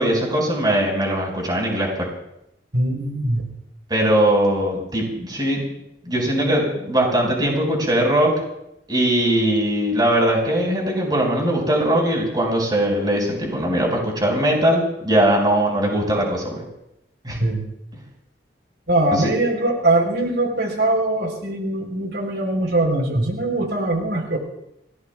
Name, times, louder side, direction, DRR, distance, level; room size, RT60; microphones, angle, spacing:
voice 1, 0.0-2.1 3.9-5.6 6.1-8.3 8.9-16.6 17.2-17.4 19.1-19.3, right 1 dB, 25° right, -1 dB, 5.6 m, -20 dB
voice 2, 2.7-3.4 17.4-17.6 18.9-24.4, right 2 dB, 80° right, 2 dB, 4.0 m, -21 dB
29.5 x 18.0 x 2.4 m, 0.82 s
head